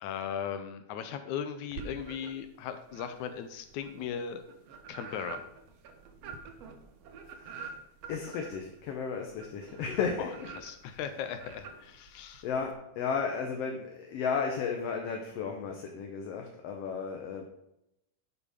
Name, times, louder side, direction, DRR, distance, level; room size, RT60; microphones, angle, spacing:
voice 1, 0.0-4.4 4.9-5.4 10.2-10.3 10.6-12.5, left 8 dB, 80° left, 9 dB, 2.0 m, -38 dB
sound 1, 1.7-2.5 2.9-12.7, right 5 dB, 65° right, 1.9 m, -47 dB
voice 2, 7.4-7.7 8.0-10.3 12.4-17.4, left 6 dB, 65° left, 2 dB, 1.7 m, -34 dB
9.8 x 6.9 x 5.1 m, 0.82 s
omnidirectional pair, 3.5 m